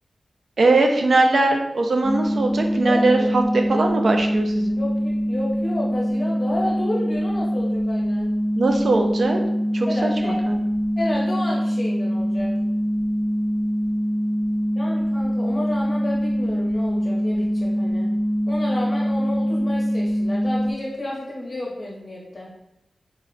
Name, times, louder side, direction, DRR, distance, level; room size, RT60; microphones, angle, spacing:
voice 1, 0.6-4.8 8.6-9.4 9.7-10.6, right 2 dB, 60° right, 3 dB, 0.5 m, -20 dB
sound 1, 2.0-20.7, equal, 25° right, 0.9 m, -23 dB
voice 2, 2.8-3.3 4.8-8.3 9.9-10.4 11.0-12.5 14.8-18.1 18.5-22.5, left 1 dB, 45° left, -4 dB, 0.7 m, -31 dB
3.7 x 2.1 x 3.8 m, 0.85 s
wide cardioid pair, 115°, 0 cm